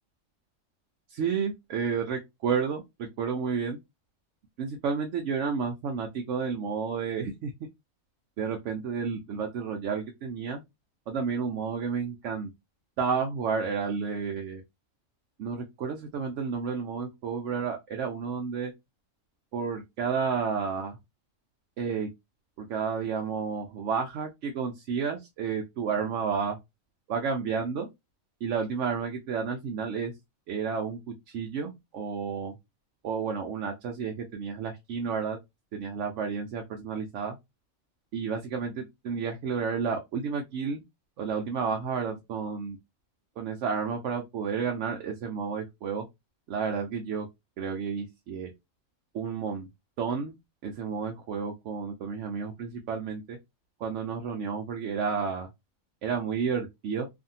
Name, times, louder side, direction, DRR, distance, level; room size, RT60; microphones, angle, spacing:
voice 1, 1.1-3.8 4.6-7.5 8.4-10.6 11.1-12.5 13.0-14.6 15.4-18.7 19.5-21.0 21.8-22.1 22.6-26.6 27.1-27.9 28.4-30.1 30.5-32.5 33.0-35.4 35.7-37.4 38.1-40.8 41.2-42.8 43.4-46.0 46.5-47.3 47.6-48.5 49.1-49.7 50.0-50.3 50.6-53.4 53.8-55.5 56.0-57.1, right 6 dB, 70° right, 0.9 m, -31 dB
2.6 x 2.5 x 2.7 m
omnidirectional pair, 1.4 m